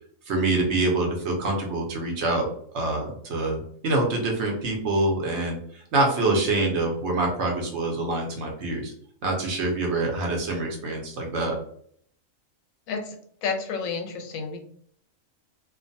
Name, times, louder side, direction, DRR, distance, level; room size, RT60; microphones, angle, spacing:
voice 1, 0.3-2.5 2.7-8.9 9.2-11.6, right 2 dB, 65° right, 0 dB, 0.9 m, -25 dB
voice 2, 13.4-14.6, left 5 dB, 85° left, 4 dB, 1.0 m, -30 dB
2.5 x 2.3 x 2.6 m, 0.62 s
omnidirectional pair, 1.4 m